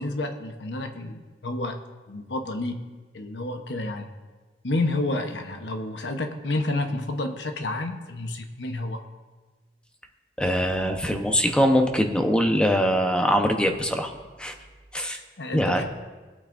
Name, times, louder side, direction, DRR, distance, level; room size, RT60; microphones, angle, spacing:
voice 1, 0.0-1.8 2.1-2.9 3.1-4.1 4.6-9.0 15.4-15.8, left 2 dB, 85° left, 5 dB, 1.0 m, -30 dB
voice 2, 10.4-14.1 14.4-14.5 14.9-15.2 15.5-15.8, equal, 5° left, 4 dB, 0.9 m, -22 dB
21.0 x 8.6 x 2.6 m, 1.3 s
head